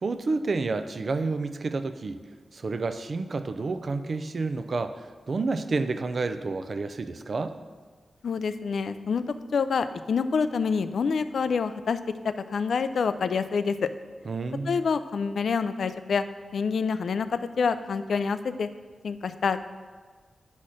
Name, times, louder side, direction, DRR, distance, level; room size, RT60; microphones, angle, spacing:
voice 1, 0.0-2.2 2.5-7.6 14.3-14.8, right 3 dB, 55° right, 10 dB, 0.5 m, -30 dB
voice 2, 8.2-9.2 9.5-12.0 12.5-13.9 14.7-16.2 16.5-18.7 19.0-19.6, left 5 dB, 80° left, 12 dB, 0.4 m, -27 dB
10.0 x 4.3 x 6.3 m, 1.5 s
wide cardioid pair, 110°, 0 cm